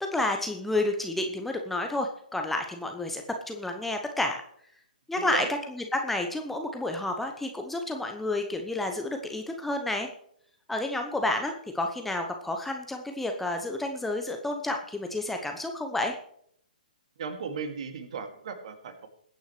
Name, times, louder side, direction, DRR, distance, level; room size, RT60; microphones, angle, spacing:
voice 1, 0.0-4.4 5.1-10.1 10.7-16.1, left 2 dB, 5° left, 3 dB, 0.9 m, -30 dB
voice 2, 5.2-5.5 17.2-19.1, right 6 dB, 45° right, 7 dB, 2.2 m, -36 dB
21.5 x 9.3 x 3.2 m, 0.67 s
figure-of-eight pair, 125°, 5 cm